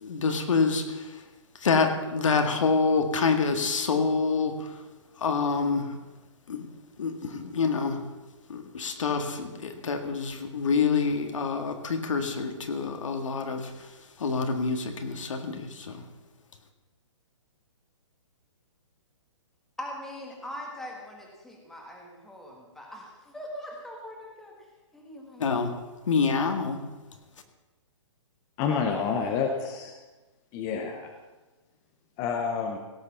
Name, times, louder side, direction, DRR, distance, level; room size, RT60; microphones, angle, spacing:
voice 1, 0.0-0.8 1.6-4.5 5.2-5.9 6.5-6.7 7.0-8.0 8.5-13.7 14.2-16.0 25.4-25.7 26.1-26.8, left 5 dB, 75° left, 6 dB, 1.9 m, -26 dB
voice 2, 19.8-24.5 24.9-25.5, left 1 dB, ahead, -1 dB, 1.5 m, -41 dB
voice 3, 28.6-29.9 30.5-31.1 32.2-32.8, left 6 dB, 20° left, 3 dB, 0.7 m, -28 dB
17.0 x 6.4 x 7.3 m, 1.2 s
hypercardioid pair, 165°, 17 cm